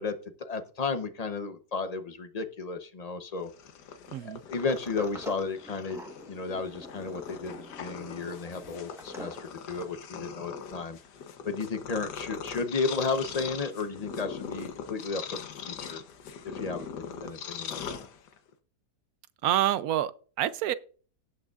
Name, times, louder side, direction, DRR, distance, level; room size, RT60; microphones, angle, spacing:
voice 1, 0.0-3.5 4.2-6.0 6.3-11.0 11.4-15.4 15.7-16.0 16.4-18.0, left 4 dB, 40° left, 0.6 m, -33 dB
Purr, 3.4-18.5, left 6 dB, 85° left, 1.5 m, -41 dB
voice 2, 4.1-4.4 19.4-20.7, right 12 dB, 70° right, 1.0 m, -27 dB
Sliding door, 4.6-10.0, equal, ahead, 0.8 m, -47 dB
18.0 x 6.4 x 2.4 m
omnidirectional pair, 1.8 m